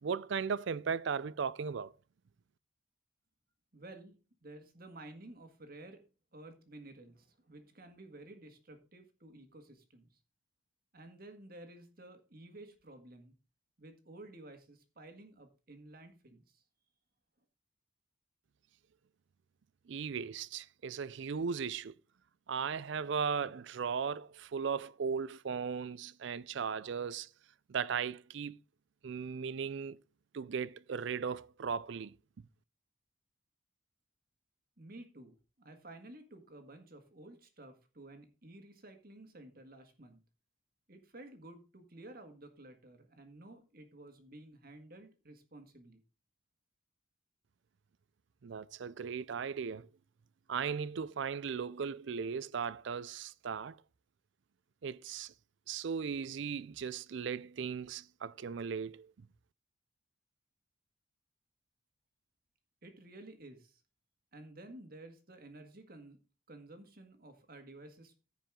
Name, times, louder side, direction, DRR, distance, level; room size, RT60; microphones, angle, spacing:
voice 1, 0.0-1.9 19.9-22.0 22.5-27.3 27.7-28.6 29.0-30.0 30.3-32.2 48.4-49.9 50.5-53.8 54.8-55.3 55.7-59.1, right 6 dB, 60° right, 0.4 m, -37 dB
voice 2, 3.7-4.2 4.4-6.0 6.3-10.2 10.9-13.3 13.8-16.6 34.8-40.2 40.9-46.0 62.8-63.8 64.3-66.2 66.5-68.2, right 2 dB, 45° right, 1.7 m, -53 dB
14.5 x 5.3 x 3.7 m
head